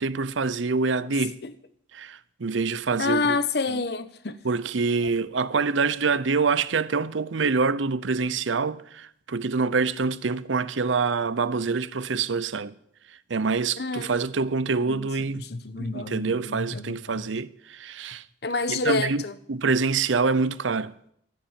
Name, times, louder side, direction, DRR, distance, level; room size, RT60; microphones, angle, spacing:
voice 1, 0.0-1.4 1.9-3.4 3.7-3.8 4.4-12.7 13.3-15.4 15.8-18.2 18.7-19.2 19.5-20.9, right 4 dB, 90° right, 0.7 m, -26 dB
voice 2, 3.0-4.4 13.8-14.1 14.8-15.1 15.3-17.2 18.4-19.3, left 3 dB, 60° left, 1.0 m, -28 dB
13.5 x 9.4 x 8.9 m
head